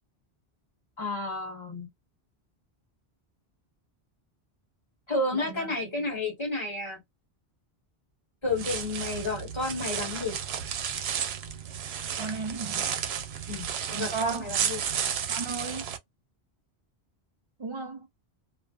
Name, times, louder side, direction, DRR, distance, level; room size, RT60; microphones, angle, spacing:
voice 1, 1.0-1.9 5.1-7.0 8.4-10.4 13.5-14.8, left 2 dB, 25° left, 1.2 m, -31 dB
voice 2, 5.3-5.7 12.2-12.9 13.9-14.5 15.3-15.9 17.6-18.1, right 4 dB, 40° right, 0.4 m, -34 dB
sound 1, 8.5-16.0, right 8 dB, 75° right, 0.8 m, -32 dB
2.3 x 2.3 x 2.3 m
omnidirectional pair, 1.1 m